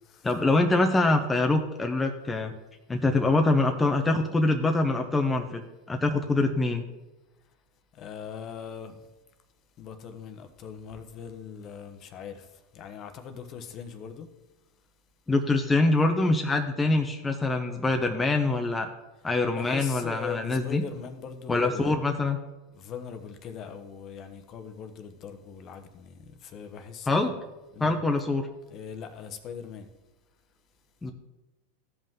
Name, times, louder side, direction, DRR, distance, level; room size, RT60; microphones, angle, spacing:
voice 1, 0.2-2.5 2.9-6.8 15.3-18.9 19.2-20.8 21.5-22.4 27.1-27.3 27.8-28.5 31.0-31.1, left 2 dB, 15° left, 0.8 m, -24 dB
voice 2, 7.9-9.1 9.8-14.3 19.5-22.0 22.7-27.3 27.7-28.0 28.7-29.9, left 7 dB, 45° left, 1.1 m, -41 dB
14.5 x 5.4 x 3.7 m
hypercardioid pair, 110°, 0 cm